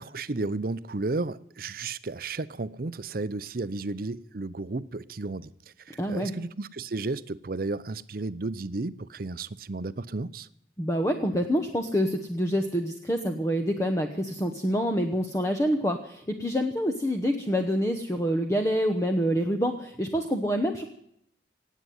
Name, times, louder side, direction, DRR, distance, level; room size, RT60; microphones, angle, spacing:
voice 1, 0.0-5.5 5.8-10.5, right 3 dB, 50° right, 0.6 m, -33 dB
voice 2, 6.0-6.3 10.8-20.8, equal, 15° left, 1.0 m, -27 dB
18.0 x 8.5 x 9.4 m
head